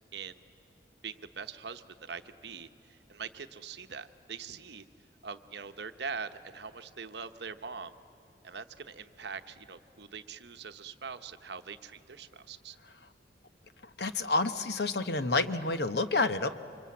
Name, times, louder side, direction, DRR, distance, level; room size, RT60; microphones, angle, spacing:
voice 1, 1.0-4.8 5.2-7.9 8.4-12.8, right 5 dB, 65° right, 9 dB, 0.9 m, -43 dB
voice 2, 14.0-16.5, left 3 dB, 60° left, 10 dB, 0.9 m, -29 dB
28.0 x 25.0 x 8.5 m, 2.7 s
head